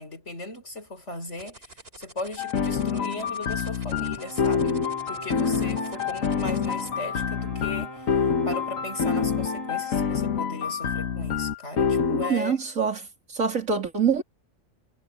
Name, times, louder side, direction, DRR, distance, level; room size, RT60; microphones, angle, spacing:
voice 1, 0.0-1.7 2.0-4.8 5.1-12.6, left 2 dB, 60° left, 5.6 m, -37 dB
sound 1, 1.4-6.9, right 2 dB, 45° right, 5.2 m, -47 dB
sound 2, 2.4-12.3, left 6 dB, 80° left, 1.7 m, -26 dB
sound 3, 4.2-10.0, equal, 15° right, 4.5 m, -41 dB
voice 2, 12.1-13.1 13.3-14.2, right 6 dB, 80° right, 3.5 m, -25 dB
omnidirectional pair, 1.4 m